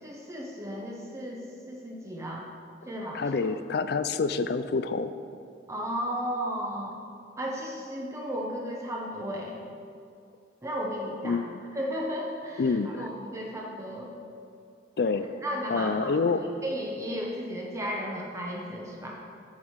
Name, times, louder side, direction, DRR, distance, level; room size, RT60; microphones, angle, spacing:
voice 1, 0.0-2.4 2.9-3.2 5.7-7.0 7.4-9.6 10.6-11.4 11.7-14.1 15.4-16.2 16.6-19.1, equal, 15° right, -2 dB, 0.8 m, -34 dB
voice 2, 3.1-5.1 11.2-11.5 12.6-13.1 15.0-15.3 15.7-16.4, left 4 dB, 60° left, 12 dB, 0.4 m, -27 dB
7.5 x 7.4 x 4.6 m, 2.5 s
head